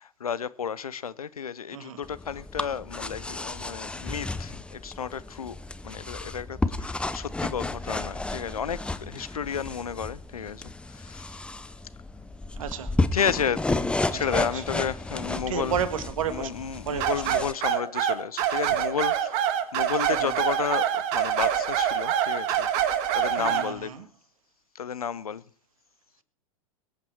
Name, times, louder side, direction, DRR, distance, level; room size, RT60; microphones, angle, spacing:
voice 1, 0.0-5.6 5.8-11.4 13.1-15.7 16.3-23.9 24.7-25.4, left 7 dB, 80° left, 0.7 m, -32 dB
sound 1, 2.0-17.5, left 2 dB, 5° left, 0.8 m, -32 dB
voice 2, 12.6-12.9 14.1-14.3 15.5-16.5 16.9-17.2 20.1-20.3 23.4-24.0, right 8 dB, 70° right, 1.7 m, -31 dB
sound 2, 17.0-23.7, right 10 dB, 45° right, 1.8 m, -25 dB
23.0 x 9.0 x 4.6 m
figure-of-eight pair, 95°, 18 cm